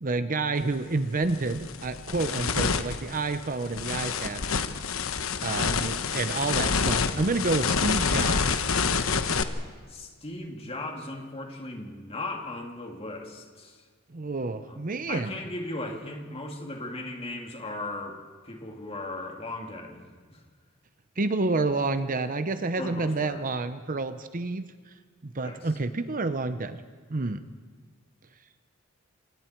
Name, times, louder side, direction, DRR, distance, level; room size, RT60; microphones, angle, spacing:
voice 1, 0.0-4.4 5.4-8.6 14.1-15.4 21.2-24.7 25.2-26.8 27.1-27.4, right 3 dB, 40° right, 11 dB, 0.8 m, -29 dB
sound 1, 0.6-0.7 1.2-9.4, left 5 dB, 75° left, 1.1 m, -27 dB
voice 2, 9.9-13.8 14.7-18.2 18.4-20.0 20.3-20.4 22.8-23.5 25.4-25.7, left 2 dB, 30° left, 1 dB, 2.8 m, -37 dB
27.0 x 27.0 x 4.6 m, 1.5 s
head